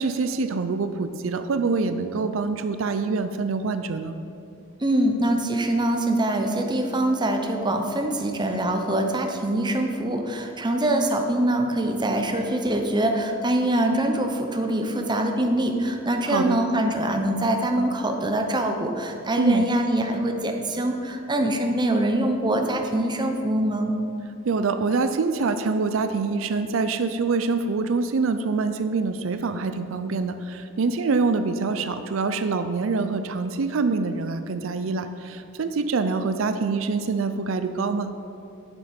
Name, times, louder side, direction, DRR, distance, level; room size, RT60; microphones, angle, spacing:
voice 1, 0.0-4.2 16.3-16.6 19.4-19.7 24.4-38.2, right 4 dB, 80° right, 9 dB, 0.5 m, -25 dB
voice 2, 4.8-23.9, right 1 dB, 20° right, 4 dB, 0.8 m, -24 dB
10.5 x 8.1 x 4.4 m, 2.6 s
head